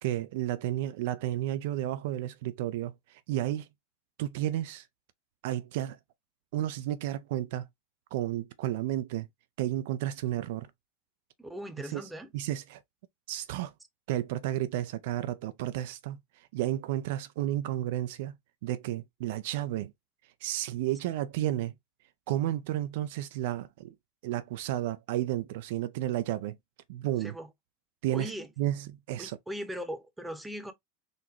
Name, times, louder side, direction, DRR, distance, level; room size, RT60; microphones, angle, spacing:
voice 1, 0.0-3.7 4.2-4.9 5.4-6.0 6.5-7.7 8.1-9.3 9.6-10.7 11.9-12.0 12.3-12.8 13.3-13.7 14.1-18.4 18.6-19.9 20.4-21.7 22.3-23.9 24.2-26.6 26.9-27.3 28.0-28.3 28.6-29.4, right 13 dB, 70° right, 0.3 m, -32 dB
voice 2, 11.4-12.3 27.2-27.5 28.1-28.5 29.2-30.7, equal, 5° right, 0.8 m, -39 dB
3.9 x 2.1 x 2.9 m
hypercardioid pair, 95°, 0 cm